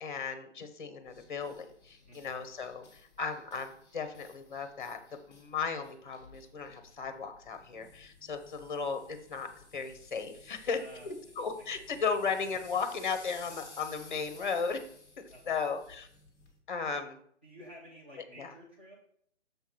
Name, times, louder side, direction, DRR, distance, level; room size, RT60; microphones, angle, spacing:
voice 1, 0.0-5.0 5.3-14.8 15.2-16.1 16.7-17.2 18.4-18.5, left 5 dB, 45° left, 8 dB, 1.0 m, -36 dB
sound 1, 1.0-16.6, left 2 dB, 10° left, 1.3 m, -56 dB
voice 2, 2.0-2.3 10.7-11.1 11.9-12.0 15.3-15.6 17.4-18.9, equal, 10° right, -5 dB, 0.5 m, -52 dB
6.8 x 3.5 x 6.0 m, 0.65 s
hypercardioid pair, 165°, 35 cm